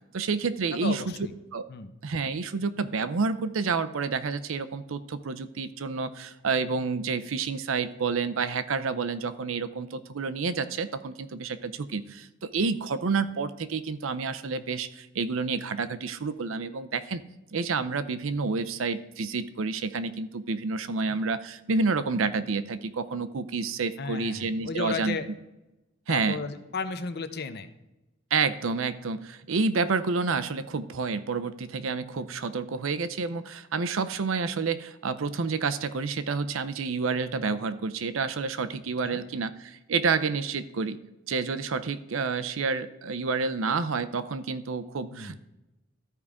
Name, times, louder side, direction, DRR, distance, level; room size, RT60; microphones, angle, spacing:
voice 1, 0.1-1.1 1.5-1.7 2.0-17.2 17.5-25.2 26.1-26.4 28.3-41.0 41.3-45.4, right 4 dB, 80° right, 12 dB, 0.6 m, -29 dB
voice 2, 0.7-1.3 1.7-1.9 21.0-21.2 24.0-25.3 26.1-27.7 39.0-39.2 45.1-45.4, left 4 dB, 55° left, 10 dB, 0.7 m, -34 dB
13.5 x 4.9 x 3.5 m, 0.99 s
head